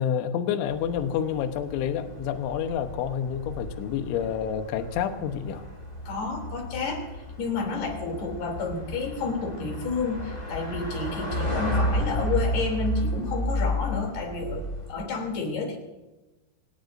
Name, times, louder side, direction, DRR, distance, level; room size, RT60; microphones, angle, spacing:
voice 1, 0.0-5.6, left 8 dB, 80° left, 7 dB, 3.4 m, -28 dB
sound 1, 0.7-14.9, equal, 10° left, 5.2 m, -32 dB
voice 2, 6.1-7.0 7.4-14.6 14.9-15.8, left 4 dB, 60° left, 3 dB, 5.0 m, -30 dB
25.0 x 20.0 x 2.7 m, 1.0 s
omnidirectional pair, 5.4 m